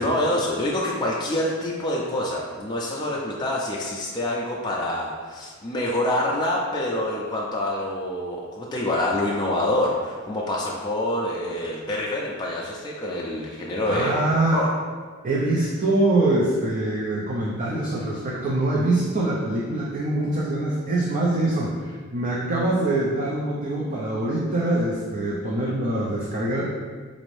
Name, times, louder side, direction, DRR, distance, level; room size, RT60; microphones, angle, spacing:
voice 1, 0.0-14.2 14.5-14.7, left 1 dB, 20° left, -4 dB, 0.3 m, -26 dB
voice 2, 13.9-14.6 15.2-26.6, right 2 dB, 40° right, -5 dB, 0.5 m, -24 dB
4.0 x 2.6 x 3.1 m, 1.5 s
head